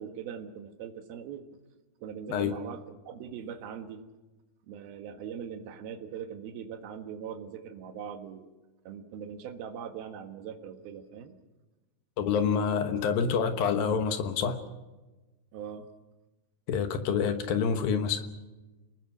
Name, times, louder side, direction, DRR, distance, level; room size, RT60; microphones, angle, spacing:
voice 1, 0.0-1.4 2.0-4.0 4.7-8.5 8.8-11.4 15.5-15.9, right 8 dB, 65° right, 6 dB, 3.1 m, -41 dB
voice 2, 12.2-14.6 16.7-18.2, left 6 dB, 65° left, 8 dB, 2.7 m, -27 dB
29.5 x 20.5 x 6.2 m, 1.1 s
omnidirectional pair, 5.1 m